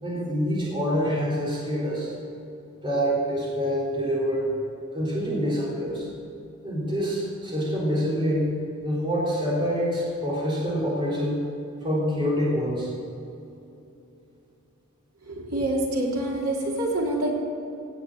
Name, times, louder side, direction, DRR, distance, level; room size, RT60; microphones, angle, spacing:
voice 1, 0.0-2.1 2.8-4.5 4.9-6.1 6.6-8.6 8.8-11.5 11.8-12.9, equal, 20° right, -6 dB, 3.8 m, -26 dB
voice 2, 15.3-17.3, right 1 dB, 85° right, -3 dB, 3.5 m, -26 dB
17.0 x 8.7 x 7.3 m, 2.9 s
head